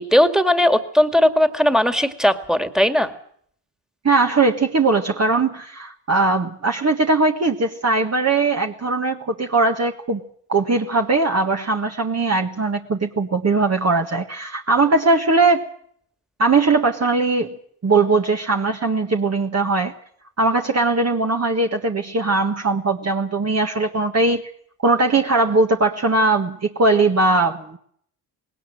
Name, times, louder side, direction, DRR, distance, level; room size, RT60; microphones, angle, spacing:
voice 1, 0.0-3.1, left 1 dB, ahead, 9 dB, 2.2 m, -17 dB
voice 2, 4.0-10.2 10.5-15.6 16.4-17.6 17.8-19.9 20.4-24.4 24.8-27.8, right 3 dB, 30° right, 3 dB, 1.6 m, -20 dB
19.0 x 18.0 x 7.7 m, 0.63 s
hypercardioid pair, 55°, 48 cm